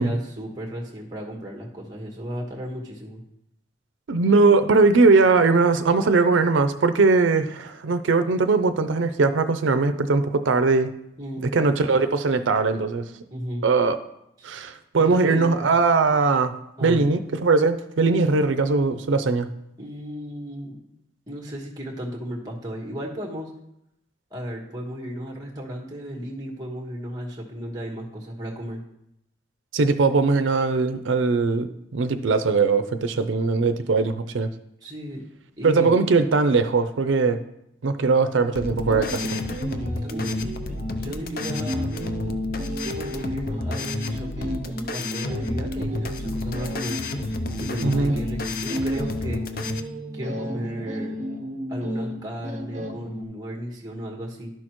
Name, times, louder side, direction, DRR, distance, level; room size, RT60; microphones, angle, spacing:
voice 1, 0.0-3.2 11.2-11.5 13.3-13.6 14.4-14.5 14.9-15.8 16.8-17.1 19.8-20.8 21.3-23.5 24.3-28.8 34.8-35.3 35.6-36.0 39.6-40.5 41.0-41.9 42.8-47.0 47.6-49.4 50.1-51.2 51.7-54.5, equal, 20° right, 0 dB, 1.4 m, -34 dB
voice 2, 4.1-10.9 11.5-13.1 13.6-14.0 14.4-16.5 16.8-19.5 29.7-34.5 35.6-37.4 37.8-39.4 47.8-48.1, right 4 dB, 90° right, 9 dB, 0.5 m, -20 dB
sound 1, 38.6-49.8, left 2 dB, 50° left, 0.5 m, -32 dB
sound 2, 38.7-53.2, equal, 40° right, 0.8 m, -32 dB
11.5 x 6.4 x 3.0 m, 0.79 s
head